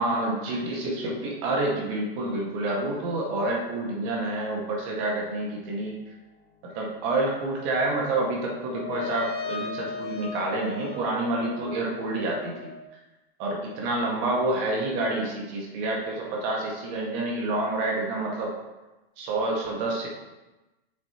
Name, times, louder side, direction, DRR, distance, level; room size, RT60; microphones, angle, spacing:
voice 1, 0.0-6.0 6.7-12.7 13.4-18.5 19.2-20.1, right 2 dB, 45° right, -2 dB, 1.8 m, -28 dB
sound 1, 8.6-12.8, left 5 dB, 55° left, 1.6 m, -36 dB
7.3 x 6.2 x 3.0 m, 1.1 s
hypercardioid pair, 120°, 30 cm